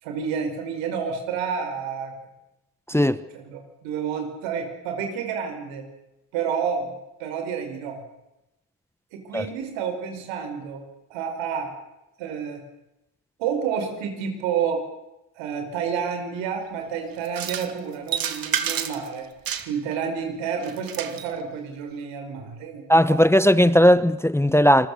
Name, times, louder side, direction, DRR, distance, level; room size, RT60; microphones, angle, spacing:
voice 1, 0.0-2.2 2.9-5.9 6.3-8.0 9.1-11.7 12.2-12.6 13.4-14.9 15.4-19.3 19.6-23.2, right 7 dB, 75° right, 5.1 m, -30 dB
voice 2, 2.9-3.2 9.3-9.5 22.9-24.9, equal, 5° left, 1.1 m, -17 dB
sound 1, 17.2-17.7 18.1-19.1 19.4-19.9 20.6-21.3, right 8 dB, 50° right, 2.1 m, -29 dB
28.0 x 21.5 x 6.7 m
hypercardioid pair, 60°, 45 cm